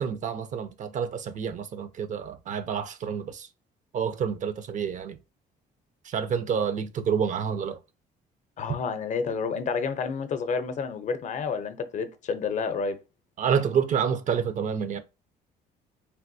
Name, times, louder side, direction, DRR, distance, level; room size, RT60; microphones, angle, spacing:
voice 1, 0.0-3.5 3.9-5.2 6.0-7.8 13.4-15.0, right 7 dB, 45° right, 0.5 m, -28 dB
voice 2, 8.6-13.0, left 5 dB, 45° left, 0.6 m, -29 dB
3.4 x 2.6 x 2.6 m
cardioid pair, 110°, 17 cm